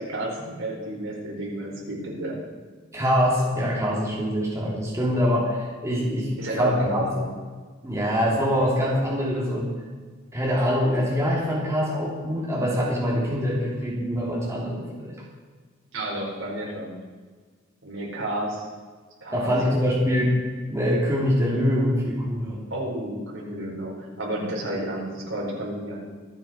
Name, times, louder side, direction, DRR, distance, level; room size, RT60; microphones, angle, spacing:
voice 1, 0.0-2.4 6.4-7.3 15.9-16.9 17.8-18.7 19.2-19.6 19.8-20.0 22.7-26.0, right 1 dB, 70° right, -2 dB, 4.7 m, -31 dB
voice 2, 2.9-6.3 6.6-7.1 7.8-9.7 10.3-15.1 19.3-20.4 20.7-22.6, equal, 15° right, -5 dB, 3.1 m, -24 dB
25.0 x 8.9 x 4.5 m, 1.5 s
head